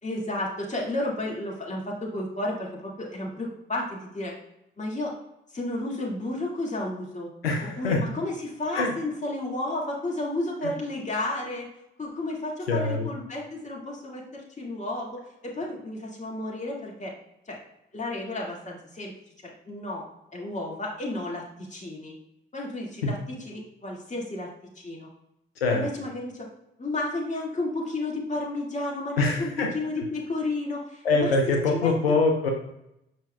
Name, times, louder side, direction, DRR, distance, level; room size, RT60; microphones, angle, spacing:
voice 1, 0.0-4.3 4.8-5.1 5.5-7.3 7.8-11.7 12.0-17.1 17.5-17.6 17.9-19.1 19.4-20.0 20.3-22.2 22.5-24.5 24.8-25.1 25.7-26.5 26.8-31.9, left 2 dB, 25° left, -2 dB, 2.0 m, -32 dB
voice 2, 7.4-8.0 8.7-8.9 10.6-10.7 12.7-13.1 23.0-23.1 25.6-25.9 29.2-29.7 31.0-32.5, left 3 dB, 90° left, 2 dB, 0.5 m, -24 dB
7.6 x 5.6 x 2.3 m, 0.83 s
figure-of-eight pair, 45°, 29 cm